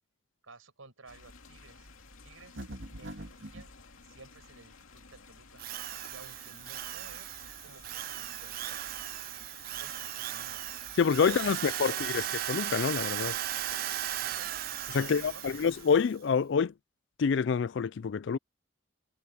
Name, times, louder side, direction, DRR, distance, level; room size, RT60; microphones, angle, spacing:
voice 1, 0.4-1.9 2.2-2.7 3.0-3.7 4.0-5.6 6.1-8.9 9.6-10.6 11.1-12.2 14.2-15.4, right 3 dB, 90° right, 5.7 m, -54 dB
sound 1, 1.1-15.9, left 3 dB, 80° left, 2.6 m, -54 dB
sound 2, 2.6-3.7, right 1 dB, 65° right, 2.4 m, -42 dB
Drill, 5.6-16.0, right 13 dB, 45° right, 0.3 m, -37 dB
voice 2, 11.0-12.2 12.5-13.4 14.9-16.7 17.2-18.4, left 6 dB, 60° left, 0.4 m, -27 dB
head